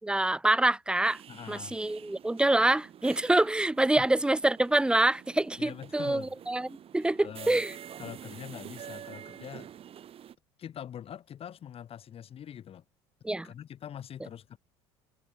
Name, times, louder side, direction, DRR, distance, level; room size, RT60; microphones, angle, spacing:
voice 1, 0.0-1.2 1.5-7.7 13.2-13.5, right 2 dB, 5° right, 0.6 m, -26 dB
sound 1, 1.0-10.3, right 10 dB, 45° right, 2.0 m, -47 dB
voice 2, 1.3-1.8 4.0-4.1 5.6-6.3 7.2-7.6 8.0-9.7 10.6-12.8 13.4-14.6, left 9 dB, 45° left, 6.1 m, -43 dB
hypercardioid pair, 75°, 13 cm